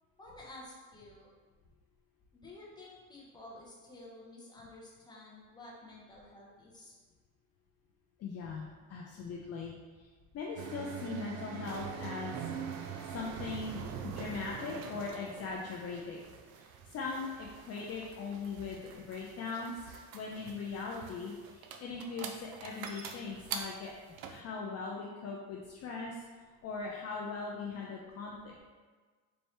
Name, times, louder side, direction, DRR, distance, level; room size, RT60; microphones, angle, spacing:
voice 1, 0.2-1.3 2.3-7.0, left 2 dB, 10° left, -5 dB, 1.0 m, -51 dB
voice 2, 8.2-10.1 10.3-12.5 13.1-16.2 16.6-16.7 16.9-23.9 24.3-26.2 26.6-28.6, left 4 dB, 40° left, -2 dB, 0.5 m, -40 dB
sound 1, 10.6-24.4, right 7 dB, 70° right, 0.6 m, -44 dB
4.4 x 2.6 x 3.2 m, 1.4 s
cardioid pair, 115°, 38 cm